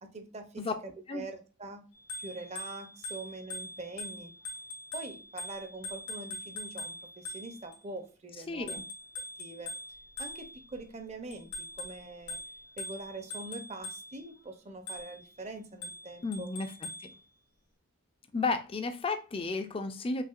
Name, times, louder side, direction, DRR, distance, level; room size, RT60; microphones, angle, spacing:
voice 1, 0.0-1.8 2.2-4.3 4.9-8.8 9.4-9.7 10.2-12.4 12.8-16.5, right 2 dB, 30° right, 0.5 m, -44 dB
Bicycle bell, 1.9-7.8 8.7-10.8 11.3-14.3 14.9-15.3 15.8-17.2, left 1 dB, 85° left, 1.3 m, -43 dB
voice 2, 8.5-8.8 16.2-16.7 17.0-17.2 18.3-20.2, left 3 dB, 25° left, 0.4 m, -33 dB
5.6 x 2.8 x 2.4 m
head